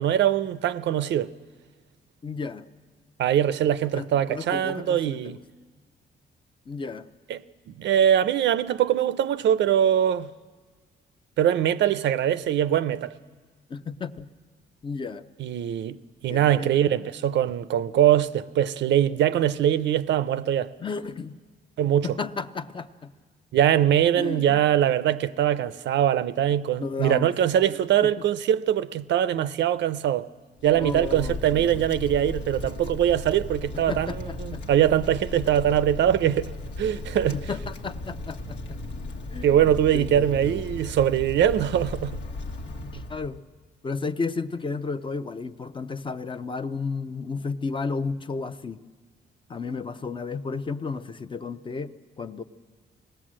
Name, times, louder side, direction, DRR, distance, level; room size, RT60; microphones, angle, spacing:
voice 1, 0.0-1.3 3.2-5.4 7.3-10.3 11.4-13.2 15.4-16.0 16.2-20.7 21.8-22.1 23.5-30.3 30.6-36.5 36.8-37.4 39.4-42.2 42.9-43.0, right 10 dB, 85° right, 0.6 m, -22 dB
voice 2, 2.2-2.7 3.9-5.4 6.7-7.1 13.7-14.3 14.8-15.2 16.3-16.8 20.8-21.4 22.0-23.1 24.2-24.6 26.8-27.3 28.0-28.1 30.8-31.8 33.9-34.6 37.3-38.8 39.3-40.6 42.8-43.4 43.8-48.8 49.5-52.4, left 4 dB, 25° left, 0.6 m, -33 dB
Wind, 30.6-43.4, left 2 dB, 90° left, 1.5 m, -36 dB
26.5 x 19.0 x 7.5 m
wide cardioid pair, 155°, 18 cm